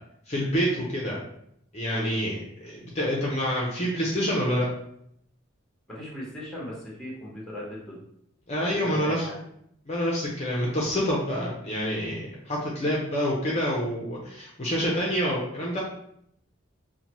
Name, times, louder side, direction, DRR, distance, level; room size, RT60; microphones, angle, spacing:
voice 1, 0.3-1.2 1.7-2.3 2.6-4.7 8.5-9.3 9.9-15.8, equal, 30° left, -3 dB, 0.6 m, -27 dB
voice 2, 5.9-8.0 8.6-9.4, equal, ahead, -5 dB, 1.0 m, -38 dB
5.5 x 2.2 x 3.0 m, 0.72 s
head